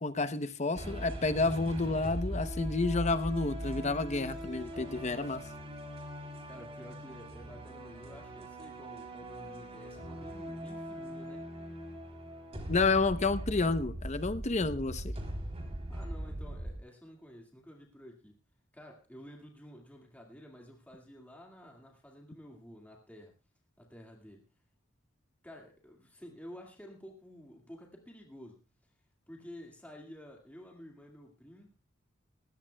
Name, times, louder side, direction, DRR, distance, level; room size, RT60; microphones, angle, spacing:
voice 1, 0.0-5.4 12.7-15.1, left 3 dB, 35° left, 0.8 m, -30 dB
sound 1, 0.8-16.8, right 1 dB, 30° right, 3.5 m, -40 dB
voice 2, 6.5-11.4 15.9-18.4 18.7-23.3 23.8-24.5 25.4-28.9 29.3-31.7, equal, 10° left, 2.0 m, -51 dB
20.5 x 16.5 x 2.3 m
head